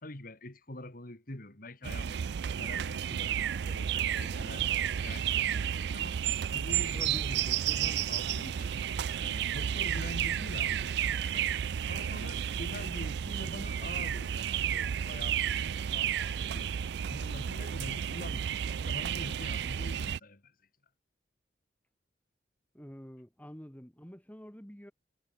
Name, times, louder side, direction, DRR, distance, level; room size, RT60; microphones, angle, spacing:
voice 1, 0.0-2.3 2.6-4.7 5.0-6.2 6.5-8.8 9.2-11.5 11.9-16.8 17.1-18.5 18.8-20.5, left 1 dB, 50° left, 2.8 m, -45 dB
sound 1, 1.8-20.2, right 9 dB, 65° right, 0.4 m, -32 dB
voice 2, 6.9-7.3 22.7-24.9, equal, 10° left, 2.5 m, -47 dB
head